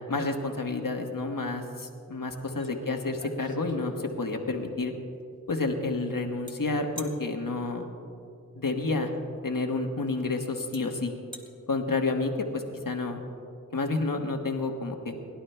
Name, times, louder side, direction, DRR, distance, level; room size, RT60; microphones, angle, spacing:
voice 1, 0.0-4.9 5.5-7.9 8.5-9.1 9.4-11.1 11.7-13.2 13.7-15.1, left 3 dB, 75° left, 3 dB, 1.3 m, -30 dB
sound 1, 2.6-2.7 3.0-4.5 6.5-6.6 7.0-7.2 9.0-9.2 10.1-10.2 10.7-10.8 11.2-11.5, equal, 15° right, 1.7 m, -44 dB
30.0 x 11.5 x 2.2 m, 2.6 s
wide cardioid pair, 45°, 33 cm